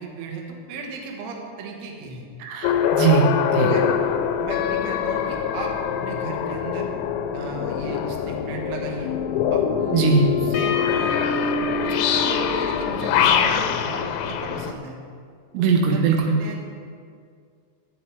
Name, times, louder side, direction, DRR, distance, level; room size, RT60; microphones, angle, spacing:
voice 1, 0.0-2.3 3.5-3.9 4.4-5.7 6.0-6.9 7.3-9.1 9.5-10.0 10.4-11.2 11.8-14.0 14.3-15.0 15.6-16.6, right 4 dB, 65° right, 0 dB, 3.0 m, -35 dB
voice 2, 2.4-3.8 9.9-10.3 15.5-16.4, right 5 dB, 80° right, 2 dB, 3.7 m, -20 dB
sound 1, 2.6-14.7, left 8 dB, 85° left, 3.3 m, -23 dB
23.5 x 8.7 x 3.3 m, 2.2 s
omnidirectional pair, 6.0 m